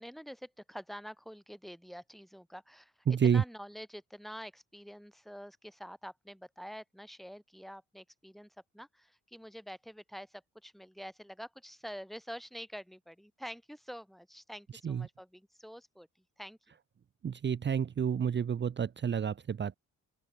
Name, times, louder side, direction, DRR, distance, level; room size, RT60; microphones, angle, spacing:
voice 1, 0.0-16.1 16.4-16.6, equal, ahead, 3.6 m, -47 dB
voice 2, 3.1-3.4 14.8-15.1 17.2-19.8, right 7 dB, 35° right, 1.0 m, -29 dB
open air
cardioid pair, 90°, 30 cm